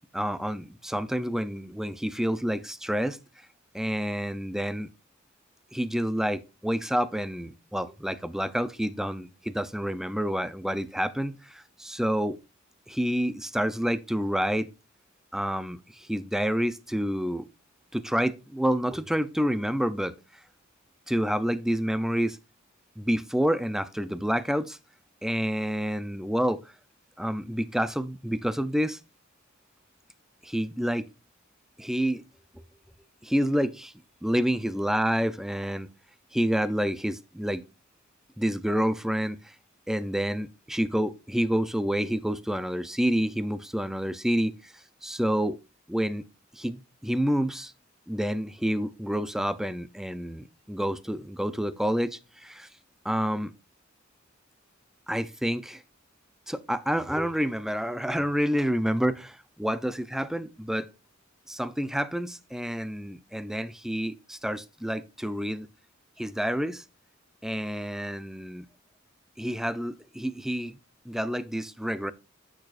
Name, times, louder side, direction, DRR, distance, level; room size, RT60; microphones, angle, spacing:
voice 1, 0.1-3.2 3.7-4.9 5.7-12.4 12.9-14.7 15.3-17.5 17.9-20.1 21.1-22.4 23.0-24.8 25.2-26.6 27.2-29.0 30.4-31.1 31.8-32.2 32.5-32.6 33.2-33.9 34.2-35.9 36.3-37.6 38.4-39.5 39.9-45.6 45.9-46.2 46.5-47.7 48.1-52.7 53.0-53.5 55.1-55.8 56.5-60.9 61.5-65.7 66.2-66.8 67.4-68.7 69.4-70.8 71.1-72.1, equal, ahead, 0.4 m, -28 dB
8.9 x 6.2 x 2.4 m
head